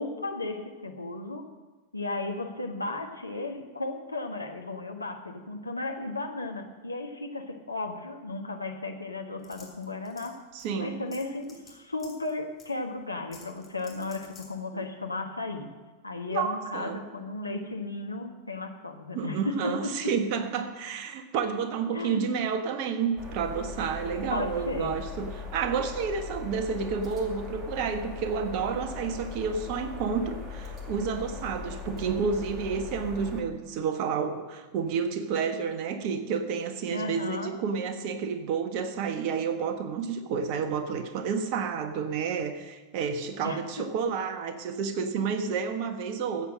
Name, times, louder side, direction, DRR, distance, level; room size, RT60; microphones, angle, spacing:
voice 1, 0.0-1.5 1.9-10.4 10.8-15.7 16.0-19.9 21.9-22.2 24.3-24.9 36.9-37.5 43.4-43.6, left 2 dB, 80° left, 4 dB, 1.4 m, -35 dB
sound 1, 9.4-10.3 10.6-10.7 11.1-11.7 12.0-12.3 12.6-12.7 13.3-14.5, left 4 dB, 20° left, 3.2 m, -50 dB
voice 2, 10.5-11.0 14.7-14.8 16.3-17.0 19.1-46.5, right 6 dB, 45° right, 8 dB, 1.3 m, -30 dB
sound 2, 23.2-33.4, left 5 dB, 20° right, 2.4 m, -39 dB
14.0 x 8.3 x 6.4 m, 1.2 s
figure-of-eight pair, 90°, 0 cm